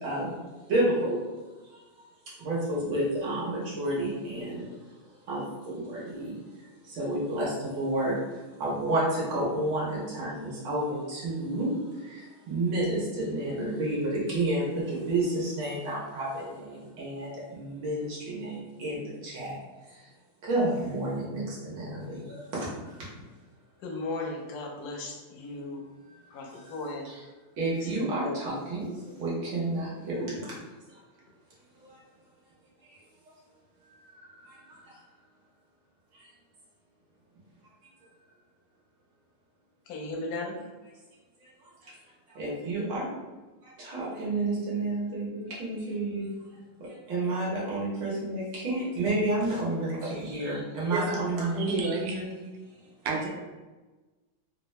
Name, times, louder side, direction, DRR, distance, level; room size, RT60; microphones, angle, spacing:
voice 1, 0.0-0.3 0.7-1.2 1.7-1.8 2.3-4.7 5.3-19.6 19.9-20.1 20.4-23.1 26.1-26.2 26.5-26.8 27.0-27.2 27.6-30.5 30.9-31.0 31.8-32.0 32.8-33.0 33.2-33.3 33.9-35.0 36.1-36.3 41.4-41.9 42.3-43.1 43.6-46.3 46.8-52.3, right 1 dB, 65° right, -6 dB, 1.6 m, -31 dB
voice 2, 23.8-25.8 26.3-27.1 27.8-28.3 39.9-40.6, left 2 dB, 70° left, 0 dB, 0.9 m, -36 dB
voice 3, 51.4-52.2 53.0-53.3, right 4 dB, 85° right, 1 dB, 1.5 m, -30 dB
3.8 x 2.3 x 3.1 m, 1.2 s
omnidirectional pair, 2.4 m